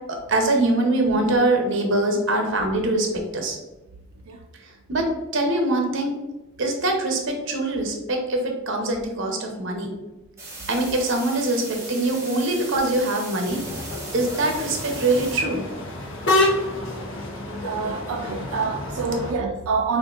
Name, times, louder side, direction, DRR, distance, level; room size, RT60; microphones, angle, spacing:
voice 1, 0.1-3.1 3.3-3.6 4.9-5.1 5.3-6.1 6.6-9.9 10.7-13.6 14.1-15.6, right 2 dB, 55° right, 3 dB, 0.8 m, -23 dB
sound 1, 10.4-15.4, right 2 dB, 15° right, 0.8 m, -38 dB
sound 2, 13.4-19.3, left 2 dB, 55° left, 0.7 m, -28 dB
voice 2, 17.6-20.0, right 4 dB, 80° right, 3 dB, 0.4 m, -26 dB
6.1 x 2.6 x 2.4 m, 1.1 s
head